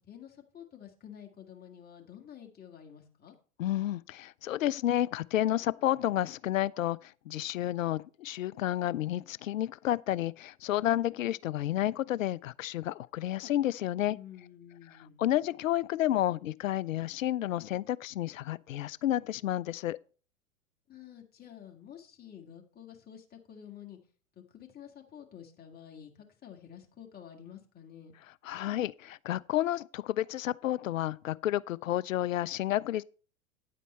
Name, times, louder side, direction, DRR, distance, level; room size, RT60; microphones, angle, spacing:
voice 1, 0.1-3.3 10.9-11.2 14.1-15.2 20.9-24.0 24.4-28.2, left 9 dB, 25° left, 2.0 m, -50 dB
voice 2, 3.6-14.2 15.2-20.0 28.4-33.0, left 13 dB, 75° left, 0.5 m, -31 dB
9.5 x 8.2 x 4.3 m
figure-of-eight pair, 95°, 40 cm